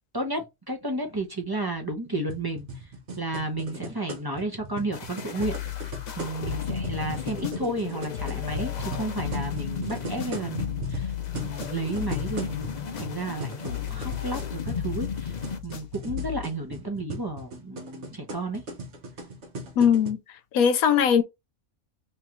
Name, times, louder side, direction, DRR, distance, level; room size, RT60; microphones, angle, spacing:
voice 1, 0.1-2.7 3.2-5.6 6.2-15.4 15.6-18.6, right 2 dB, 20° right, 0.7 m, -32 dB
sound 1, 2.3-20.1, right 2 dB, 60° right, 1.1 m, -39 dB
sound 2, 4.9-15.6, left 4 dB, 45° left, 0.6 m, -36 dB
sound 3, 5.4-7.9 8.1-13.4 13.6-16.4, left 14 dB, 65° left, 1.1 m, -36 dB
voice 2, 19.8-20.2 20.5-21.2, left 7 dB, 85° left, 1.2 m, -19 dB
3.6 x 3.2 x 3.0 m
omnidirectional pair, 1.5 m